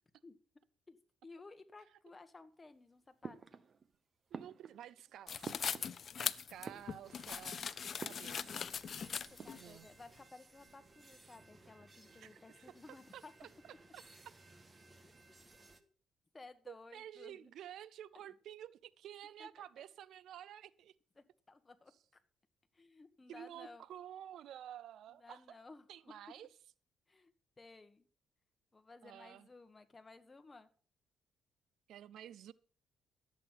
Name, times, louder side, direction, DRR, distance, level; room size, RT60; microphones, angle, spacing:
voice 1, 1.2-3.4 9.4-13.3 15.0-15.9 16.3-17.5 19.4-19.7 21.2-22.2 22.7-23.8 25.1-25.9 27.1-27.3 27.6-28.1 28.7-30.7, left 3 dB, 25° left, 1.6 m, -57 dB
sound 1, 3.2-4.0 4.3-6.2 6.5-7.4 8.0-8.6 8.9-9.0 9.2-10.0, right 5 dB, 40° right, 0.9 m, -50 dB
voice 2, 4.3-8.7 9.5-9.9 12.1-13.5 13.9-14.3 16.7-20.9 23.3-25.6 25.9-26.5 29.0-29.5 31.9-32.5, right 11 dB, 75° right, 0.5 m, -52 dB
sound 2, 5.3-9.6, left 7 dB, 50° left, 0.5 m, -40 dB
sound 3, 7.0-15.8, right 2 dB, 25° right, 1.5 m, -61 dB
12.0 x 8.3 x 5.8 m
cardioid pair, 90°, 0 cm